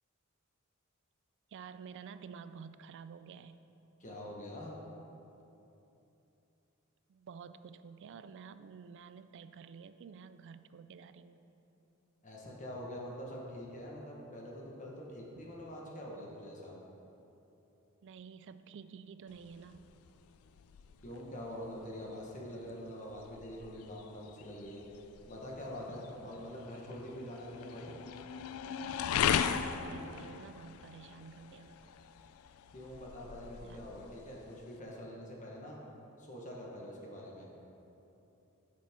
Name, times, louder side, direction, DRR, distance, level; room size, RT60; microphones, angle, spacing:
voice 1, 1.5-3.6 7.1-11.5 18.0-19.8 29.6-31.9 33.6-33.9, right 6 dB, 60° right, 12 dB, 0.3 m, -50 dB
voice 2, 4.0-4.7 12.2-16.7 21.0-24.8 25.3-27.9 32.7-35.8 36.2-37.5, equal, 35° left, -3 dB, 1.3 m, -45 dB
sound 1, 19.3-34.8, left 8 dB, 85° left, 0.3 m, -39 dB
9.9 x 7.3 x 3.6 m, 2.9 s
head